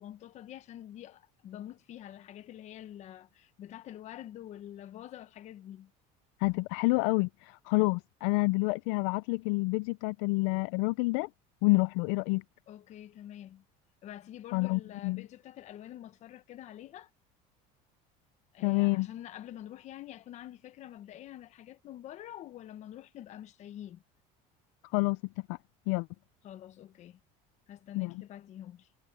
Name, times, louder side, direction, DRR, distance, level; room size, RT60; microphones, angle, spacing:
voice 1, 0.0-5.9 12.7-13.6 14.0-17.1 18.5-24.0 26.4-27.2 27.7-28.9, left 12 dB, 45° left, 1.2 m, -46 dB
voice 2, 6.4-11.3 11.6-12.4 14.5-15.2 18.6-19.1 24.9-25.2 25.5-25.6 25.9-26.1 27.9-28.1, left 25 dB, 75° left, 0.5 m, -28 dB
cardioid pair, 140°, 17 cm